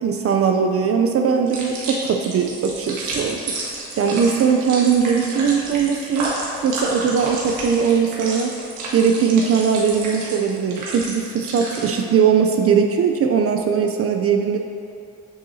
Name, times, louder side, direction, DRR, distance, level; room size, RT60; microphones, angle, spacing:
voice 1, 0.0-3.4 4.0-6.3 6.6-8.5 8.9-14.6, right 6 dB, 50° right, 4 dB, 0.5 m, -19 dB
sound 1, 1.5-11.9, right 2 dB, 90° right, 1.5 m, -31 dB
7.8 x 6.5 x 2.7 m, 2.5 s
cardioid pair, 90°, 30 cm